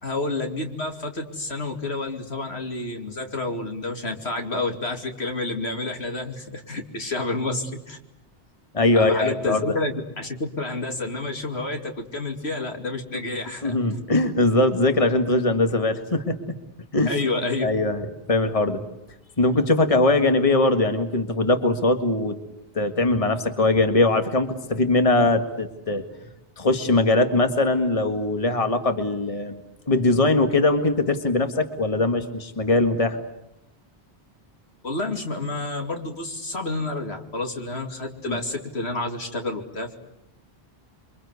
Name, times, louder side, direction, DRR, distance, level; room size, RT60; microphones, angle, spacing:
voice 1, 0.0-8.0 8.9-14.0 17.0-17.7 34.8-40.0, left 2 dB, 75° left, 4 dB, 2.9 m, -29 dB
voice 2, 8.7-9.8 13.6-16.4 16.9-17.2 17.6-18.8 19.4-22.4 22.8-26.0 26.6-29.6 29.9-33.2 38.3-38.4, left 2 dB, 30° left, 7 dB, 1.9 m, -21 dB
28.5 x 24.0 x 8.2 m, 0.87 s
omnidirectional pair, 1.1 m